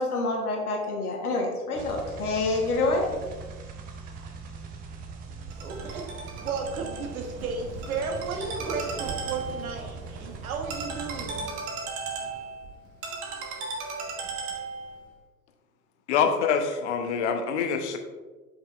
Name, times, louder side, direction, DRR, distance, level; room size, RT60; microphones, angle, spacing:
voice 1, 0.0-3.1, left 2 dB, 70° left, 1 dB, 1.4 m, -27 dB
sound 1, 1.7-11.5, right 4 dB, 20° right, 0.5 m, -41 dB
Ringtone, 5.5-15.1, right 4 dB, 40° right, 1.3 m, -37 dB
voice 2, 5.6-6.0 6.4-11.4, right 4 dB, 65° right, 3 dB, 1.2 m, -34 dB
voice 3, 16.1-18.0, left 6 dB, 45° left, 5 dB, 0.8 m, -25 dB
8.0 x 5.1 x 2.4 m, 1.3 s
figure-of-eight pair, 90°, 46 cm